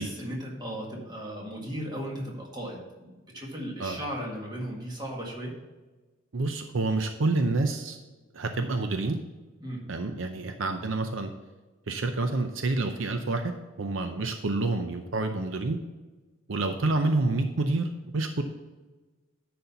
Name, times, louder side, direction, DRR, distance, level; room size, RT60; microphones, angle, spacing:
voice 1, 0.0-5.5 9.6-9.8, equal, 20° right, -2 dB, 1.8 m, -36 dB
voice 2, 6.3-8.0 8.3-9.2 9.9-11.3 11.9-13.5 13.8-15.8 16.5-17.9 18.1-18.4, right 2 dB, 65° right, 6 dB, 0.6 m, -28 dB
10.5 x 4.3 x 5.6 m, 1.2 s
head